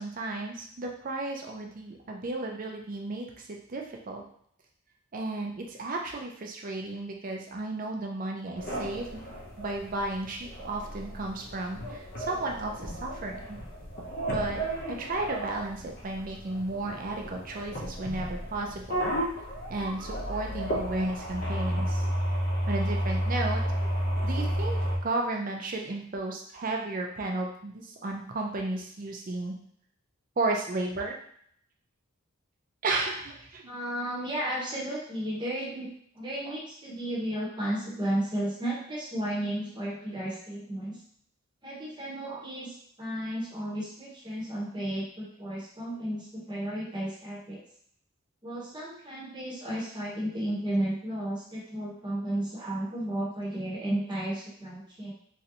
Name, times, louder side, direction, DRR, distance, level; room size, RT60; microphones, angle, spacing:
voice 1, 0.0-4.2 5.1-9.2 9.6-13.6 14.3-14.7 15.0-19.0 19.7-22.0 22.7-23.6 24.2-29.6 30.4-31.2 32.8-33.7, right 2 dB, 40° right, 1 dB, 0.5 m, -33 dB
sound 1, 8.6-25.0, equal, 45° left, 0.6 m, -32 dB
voice 2, 33.7-35.9 36.1-41.0 41.6-47.6 48.4-55.1, right 1 dB, 20° right, -5 dB, 0.9 m, -33 dB
3.1 x 2.6 x 2.7 m, 0.65 s
head